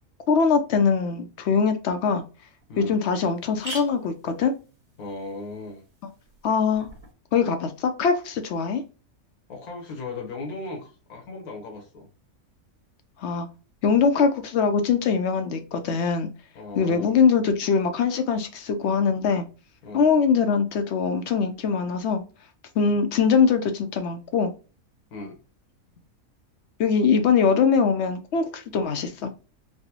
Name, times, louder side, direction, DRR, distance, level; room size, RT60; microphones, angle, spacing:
voice 1, 0.3-2.2 2.8-4.5 6.4-6.9 7.3-8.8 13.2-13.5 13.8-16.3 16.8-19.5 19.9-22.2 22.8-24.5 26.8-29.3, left 5 dB, 65° left, 7 dB, 0.7 m, -22 dB
sound 1, 2.0-2.1 2.6-2.7 2.9-3.0 3.3-7.1, right 2 dB, 25° right, 1.1 m, -43 dB
voice 2, 5.0-5.8 9.5-12.1 16.5-17.2 19.8-20.1 22.8-23.0 25.1-25.4, left 3 dB, 85° left, 2 dB, 1.5 m, -37 dB
4.3 x 2.1 x 2.8 m, 0.33 s
omnidirectional pair, 1.5 m